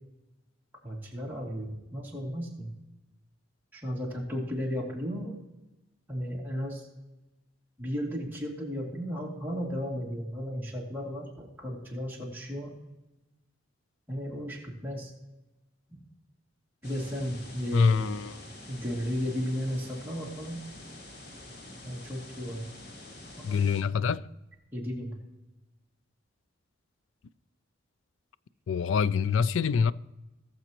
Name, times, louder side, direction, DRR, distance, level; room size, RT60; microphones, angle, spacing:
voice 1, 0.8-2.7 3.7-5.3 6.1-6.9 7.8-12.7 14.1-15.1 15.9-16.0 16.8-18.1 18.7-20.6 21.8-22.7 23.4-23.6 24.7-25.1, equal, 10° right, 2.5 m, -34 dB
sound 1, 16.8-23.8, left 1 dB, 50° left, 1.9 m, -47 dB
voice 2, 17.7-18.4 23.4-24.3 28.7-29.9, left 6 dB, 70° left, 0.4 m, -25 dB
19.0 x 7.0 x 3.0 m
head